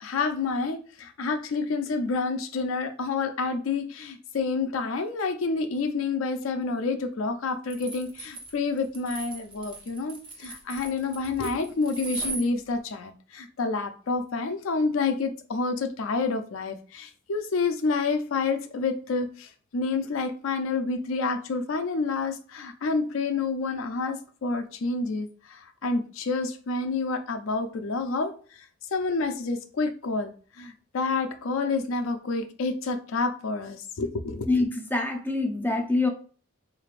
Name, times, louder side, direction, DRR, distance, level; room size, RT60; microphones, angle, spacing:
voice 1, 0.0-28.3 28.9-30.3 30.6-34.5, left 4 dB, 70° left, 0.4 m, -28 dB
sound 1, 7.7-12.5, right 3 dB, 25° right, 0.8 m, -38 dB
voice 2, 34.5-36.1, left 2 dB, 10° left, 0.5 m, -25 dB
4.1 x 3.2 x 2.4 m
head